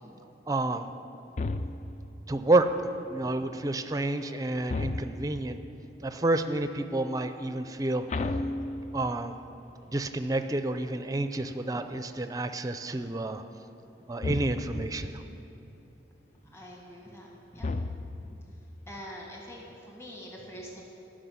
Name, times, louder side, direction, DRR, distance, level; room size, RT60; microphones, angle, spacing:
voice 1, 0.5-0.9 2.3-2.7 3.1-5.6 6.0-8.0 8.9-9.4 9.9-13.4 14.1-15.2, right 2 dB, 20° right, 9 dB, 0.5 m, -29 dB
sound 1, 1.4-2.1 4.7-5.5 8.1-9.3 14.2-14.9 17.6-18.4, left 2 dB, 40° left, 0.4 m, -33 dB
voice 2, 16.4-17.3 17.5-17.7 18.2-18.6 18.8-20.8, equal, 15° left, -2 dB, 1.5 m, -45 dB
12.5 x 6.3 x 9.4 m, 3.0 s
head